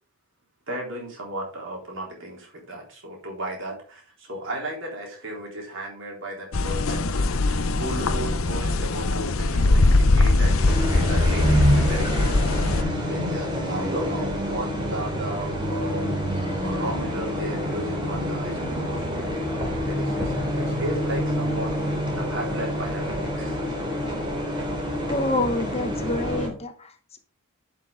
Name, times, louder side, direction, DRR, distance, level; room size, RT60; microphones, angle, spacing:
voice 1, 0.7-23.6, right 1 dB, 55° right, 0 dB, 3.8 m, -35 dB
sound 1, 6.5-12.8, left 2 dB, 70° left, 0.8 m, -21 dB
sound 2, 10.6-26.5, equal, 20° right, 2.8 m, -27 dB
voice 2, 25.1-27.2, left 2 dB, 30° left, 6 dB, 1.1 m, -27 dB
11.0 x 6.1 x 3.8 m, 0.40 s
head